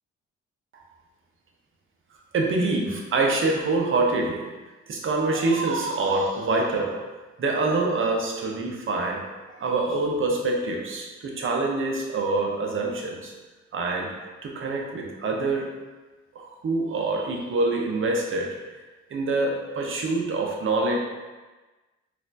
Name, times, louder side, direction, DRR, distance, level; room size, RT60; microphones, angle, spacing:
voice 1, 2.3-4.4 4.9-7.0 7.4-9.2 9.5-13.3 13.7-14.1 14.4-15.7 16.3-18.5 19.1-21.0, right 3 dB, 40° right, 0 dB, 0.7 m, -25 dB
4.1 x 2.6 x 2.6 m, 1.2 s
cardioid pair, 90°, 30 cm